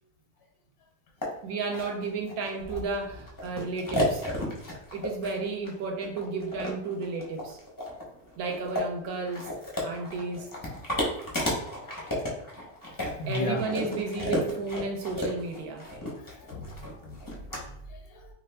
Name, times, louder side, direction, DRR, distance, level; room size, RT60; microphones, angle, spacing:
sound 1, 1.2-1.3 1.7-17.6, left 1 dB, 25° left, 0.4 m, -33 dB
voice 1, 1.4-4.3 4.9-7.6 8.4-9.5 9.8-10.5 13.3-15.9, right 4 dB, 75° right, 2 dB, 1.1 m, -33 dB
voice 2, 12.9-13.6 16.5-18.3, left 1 dB, 85° left, 2 dB, 1.2 m, -36 dB
2.8 x 2.4 x 3.3 m, 0.78 s
omnidirectional pair, 1.6 m